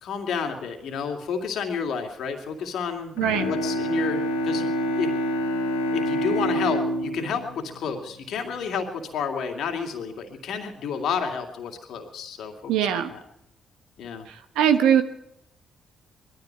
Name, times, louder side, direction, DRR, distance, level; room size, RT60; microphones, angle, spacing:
voice 1, 0.0-3.1 3.5-5.1 5.9-13.2 14.0-14.3, left 6 dB, 70° left, 4 dB, 2.5 m, -30 dB
Bowed string instrument, 3.2-8.8, equal, 85° left, 2.4 m, -27 dB
voice 2, 3.2-3.5 12.7-13.1 14.3-15.0, right 9 dB, 75° right, 8 dB, 1.2 m, -21 dB
20.5 x 13.5 x 4.7 m, 0.75 s
hypercardioid pair, 45°, 0 cm